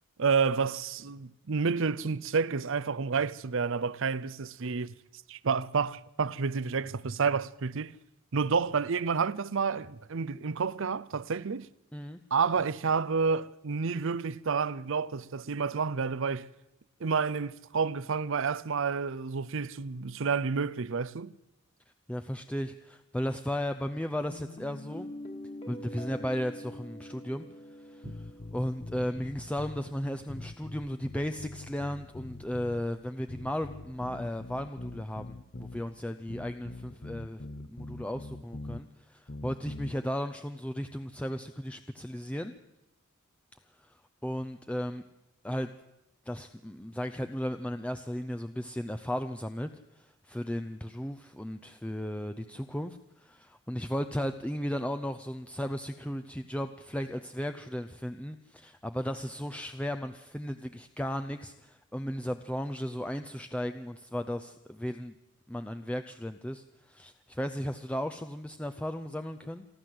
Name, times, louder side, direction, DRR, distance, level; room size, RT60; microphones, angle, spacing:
voice 1, 0.2-4.9 5.3-7.9 8.3-11.7 12.3-16.5 17.0-21.3 28.0-28.1, right 5 dB, 65° right, 0.7 m, -29 dB
voice 2, 22.1-25.1 25.7-27.5 27.8-42.5 44.2-45.0 45.4-45.7 46.3-49.7 50.0-65.1 65.5-69.7, equal, 5° left, 0.6 m, -35 dB
Guitar, 24.3-29.3, left 1 dB, 30° left, 2.2 m, -45 dB
sound 1, 28.0-29.8 30.3-32.9 33.3-35.9 36.3-38.8 39.3-39.9, left 2 dB, 50° left, 0.9 m, -43 dB
28.5 x 11.5 x 7.8 m
head